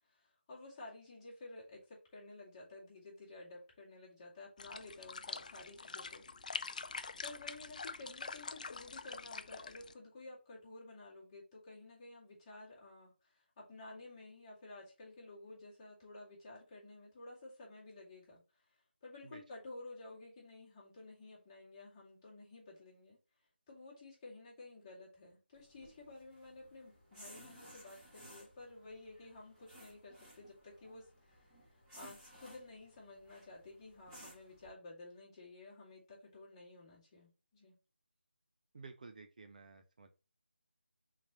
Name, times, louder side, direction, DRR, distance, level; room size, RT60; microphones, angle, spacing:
voice 1, 0.0-6.2 6.9-18.4 19.0-23.2 23.7-37.7, left 2 dB, 20° left, 1.9 m, -53 dB
sound 1, 4.6-9.9, left 4 dB, 40° left, 0.4 m, -45 dB
sound 2, 25.5-34.7, right 1 dB, 10° right, 1.8 m, -59 dB
voice 2, 38.7-40.1, right 4 dB, 40° right, 0.5 m, -53 dB
4.4 x 3.9 x 2.9 m
figure-of-eight pair, 160°, 6 cm